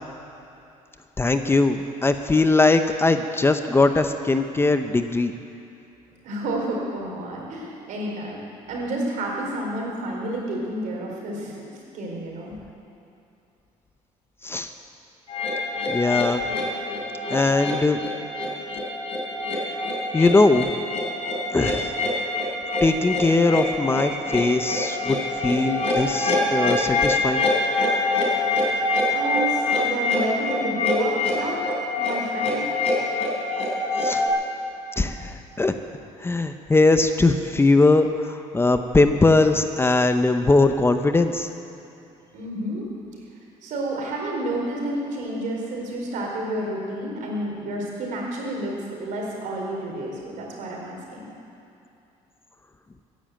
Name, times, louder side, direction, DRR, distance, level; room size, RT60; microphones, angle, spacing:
voice 1, 1.2-5.3 14.4-14.7 15.9-16.4 17.3-18.0 20.1-20.7 21.5-22.0 22.8-25.2 25.4-27.4 34.0-34.2 35.0-35.7 36.2-41.5, left 3 dB, 15° left, 8 dB, 0.8 m, -20 dB
voice 2, 6.2-8.4 8.7-12.5 29.1-32.7 42.3-42.9 43.6-51.3, right 1 dB, 70° right, -1 dB, 4.4 m, -30 dB
sound 1, 15.3-34.3, left 2 dB, 50° left, 4.3 m, -25 dB
16.0 x 10.5 x 7.8 m, 2.7 s
cardioid pair, 95°, 14 cm